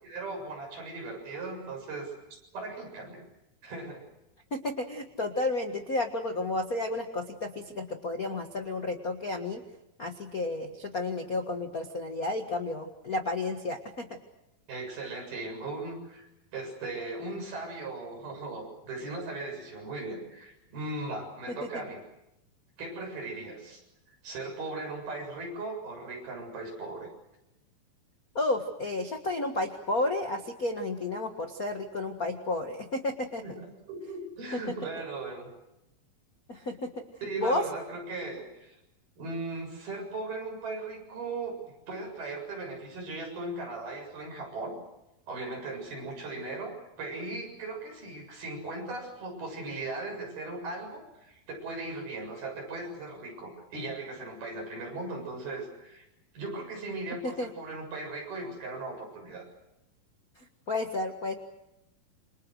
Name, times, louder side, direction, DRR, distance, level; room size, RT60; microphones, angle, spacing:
voice 1, 0.0-2.1 2.5-3.2 3.6-4.0 14.7-22.0 22.8-23.8 24.2-27.1 33.4-35.5 37.2-38.8 39.2-41.6 41.9-44.8 45.3-56.0 56.3-59.5, right 2 dB, 70° right, 2 dB, 9.0 m, -38 dB
voice 2, 4.5-9.6 10.0-14.1 28.3-33.4 34.5-34.6 36.5-36.9 37.4-37.6 57.2-57.5 60.7-61.3, left 2 dB, 55° left, 5 dB, 0.9 m, -32 dB
28.5 x 26.0 x 6.4 m, 0.87 s
omnidirectional pair, 4.5 m